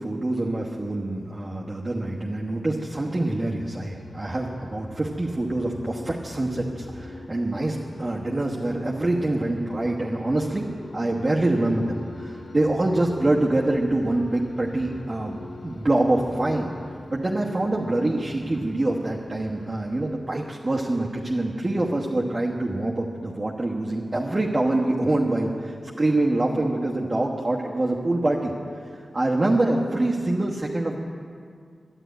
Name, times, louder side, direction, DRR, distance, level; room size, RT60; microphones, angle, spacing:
voice 1, 0.0-15.4 15.6-16.7 17.1-28.5 29.1-31.0, right 2 dB, 25° right, -3 dB, 1.2 m, -25 dB
sound 1, 4.0-20.1, left 2 dB, 85° left, 2.4 m, -43 dB
11.0 x 10.0 x 9.2 m, 2.1 s
wide cardioid pair, 105°, 0 cm